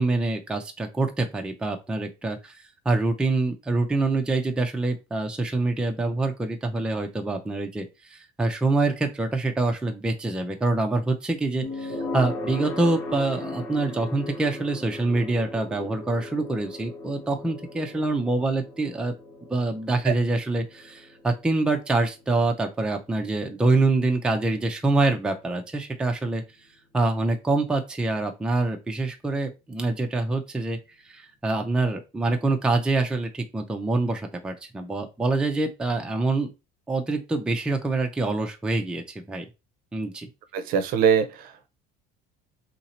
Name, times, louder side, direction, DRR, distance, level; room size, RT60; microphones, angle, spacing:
voice 1, 0.0-19.1 19.5-26.4 26.9-30.8 31.0-36.5 36.9-39.5 39.9-40.3, right 2 dB, 5° right, 0.4 m, -25 dB
sound 1, 11.6-26.6, left 2 dB, 85° left, 1.2 m, -38 dB
voice 2, 40.5-41.7, right 7 dB, 55° right, 0.6 m, -23 dB
2.9 x 2.7 x 4.1 m
cardioid pair, 150°, 18 cm